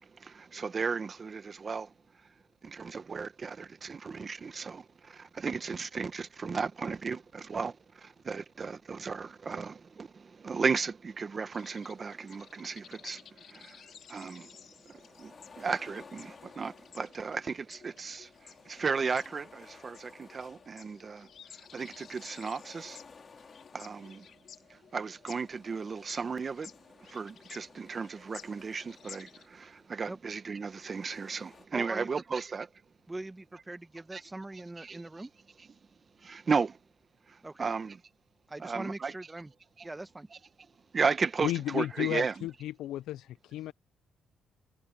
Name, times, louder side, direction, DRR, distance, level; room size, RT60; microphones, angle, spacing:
voice 1, 0.1-1.9 2.6-13.8 14.1-21.3 21.5-23.0 23.7-24.3 24.7-26.7 27.0-32.7 34.1-34.2 34.8-35.0 36.2-36.8 37.3-37.9 38.6-39.1 40.9-42.3, right 5 dB, 40° right, 1.3 m, -35 dB
sound 1, 11.5-29.5, left 8 dB, 60° left, 3.6 m, -54 dB
sound 2, 14.8-17.5 18.1-21.0 21.3-24.5 25.2-30.0 30.6-31.7, left 5 dB, 40° left, 3.4 m, -56 dB
voice 2, 31.7-32.1 33.1-35.3 37.4-37.7 38.5-39.5 39.8-40.3, right 2 dB, 15° right, 1.4 m, -41 dB
voice 3, 41.4-43.7, left 14 dB, 85° left, 0.4 m, -33 dB
cardioid pair, 90°, 0 cm